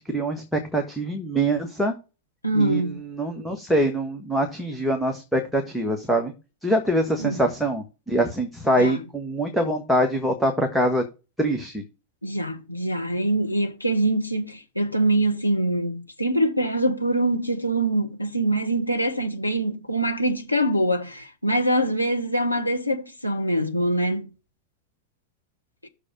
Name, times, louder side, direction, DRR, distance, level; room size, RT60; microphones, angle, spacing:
voice 1, 0.0-1.9 2.5-6.3 6.6-11.0 11.4-11.8, right 1 dB, ahead, 1.5 m, -24 dB
voice 2, 2.4-3.0 7.2-7.3 8.8-9.0 12.2-24.3, right 1 dB, 85° left, 1.1 m, -24 dB
6.6 x 4.8 x 5.9 m
figure-of-eight pair, 90°, 0 cm